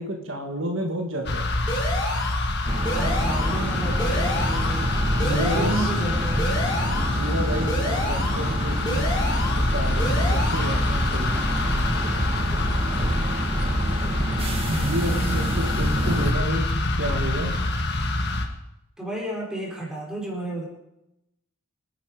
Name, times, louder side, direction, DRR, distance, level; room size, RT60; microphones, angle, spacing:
voice 1, 0.0-1.4 5.0-5.9 6.8-9.0 9.4-11.3 14.7-16.6 17.0-17.5, equal, 65° right, 2 dB, 2.1 m, -30 dB
sound 1, 1.2-18.4, left 2 dB, 50° left, 1.8 m, -26 dB
sound 2, 1.7-2.5 2.9-3.7 4.0-4.8 5.2-6.1 6.4-7.2 7.7-8.5 8.9-9.7 10.0-10.8, left 1 dB, 20° left, 3.3 m, -30 dB
sound 3, 2.7-16.3, right 1 dB, 25° right, 2.2 m, -28 dB
voice 2, 2.9-4.9 5.3-6.6 15.0-16.0 19.0-20.7, right 2 dB, 5° right, -3 dB, 4.2 m, -32 dB
26.0 x 10.0 x 5.1 m, 0.89 s
head